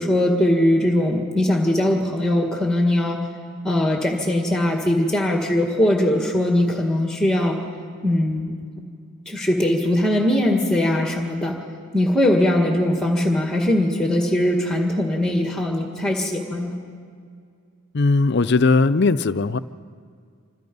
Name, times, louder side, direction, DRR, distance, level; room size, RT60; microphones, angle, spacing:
voice 1, 0.0-3.2 3.6-7.6 8.0-8.5 9.3-11.6 11.9-16.8, left 1 dB, 5° left, 1 dB, 1.9 m, -20 dB
voice 2, 17.9-19.6, left 3 dB, 50° left, 15 dB, 0.6 m, -18 dB
27.0 x 26.0 x 5.4 m, 2.2 s
head